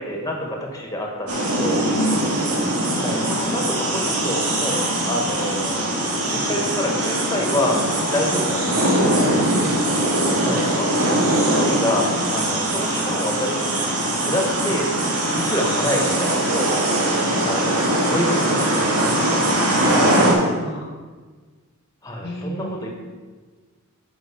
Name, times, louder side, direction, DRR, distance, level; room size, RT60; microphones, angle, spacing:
voice 1, 0.0-1.8 2.9-7.8 8.1-9.3 10.4-11.0 11.5-13.9 14.2-14.9 15.3-16.7 17.5-19.7 22.0-22.9, left 1 dB, 15° left, 1 dB, 1.4 m, -27 dB
sound 1, 1.3-20.3, right 1 dB, 80° right, 2.0 m, -21 dB
voice 2, 1.9-2.5 9.4-9.7 20.0-20.9 22.2-22.8, equal, 45° left, 0 dB, 0.7 m, -29 dB
9.2 x 6.2 x 5.0 m, 1.4 s
head